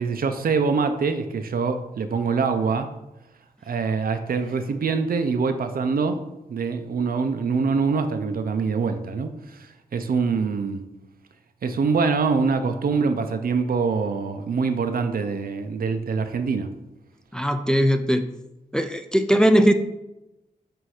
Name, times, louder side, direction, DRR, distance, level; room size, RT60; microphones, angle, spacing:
voice 1, 0.0-2.9 3.7-6.2 6.5-9.3 9.9-10.8 11.6-16.7, right 5 dB, 75° right, 8 dB, 0.6 m, -24 dB
voice 2, 17.3-18.3 18.7-19.7, equal, 5° left, 7 dB, 0.4 m, -19 dB
7.5 x 2.7 x 4.9 m, 0.94 s
wide cardioid pair, 110°, 15 cm